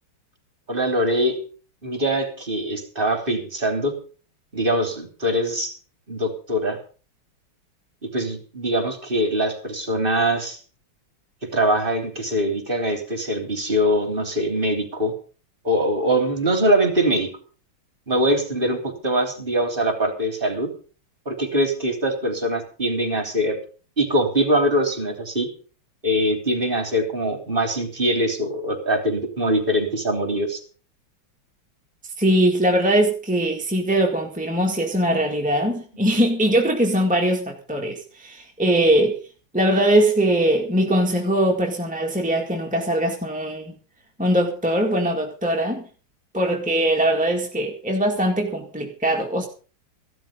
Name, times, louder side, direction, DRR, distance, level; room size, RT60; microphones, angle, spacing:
voice 1, 0.7-1.4 1.8-3.9 4.5-5.7 6.1-6.8 8.0-10.6 11.5-15.1 15.6-17.3 18.1-20.7 21.3-23.6 24.0-25.5 26.0-30.6, right 1 dB, 25° right, 3.5 m, -23 dB
voice 2, 32.2-39.2 39.5-43.7 44.2-45.8 46.3-49.5, right 1 dB, 5° right, 1.7 m, -21 dB
15.5 x 12.5 x 5.2 m
omnidirectional pair, 2.3 m